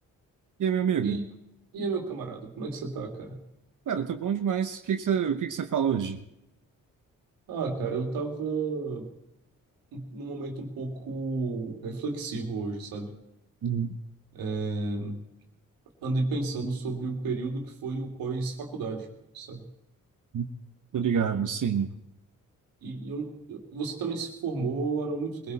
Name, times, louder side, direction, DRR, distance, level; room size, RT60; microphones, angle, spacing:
voice 1, 0.6-1.2 3.9-6.2 13.6-14.0 20.3-20.5 20.9-21.9, right 7 dB, 60° right, 6 dB, 1.1 m, -27 dB
voice 2, 1.7-3.4 7.5-9.1 9.9-13.2 14.3-15.2 16.0-19.1 19.3-19.7 21.0-21.4 22.8-25.5, right 3 dB, 90° right, 2 dB, 2.5 m, -32 dB
21.0 x 16.5 x 4.2 m, 0.85 s
supercardioid pair, 50°, 34 cm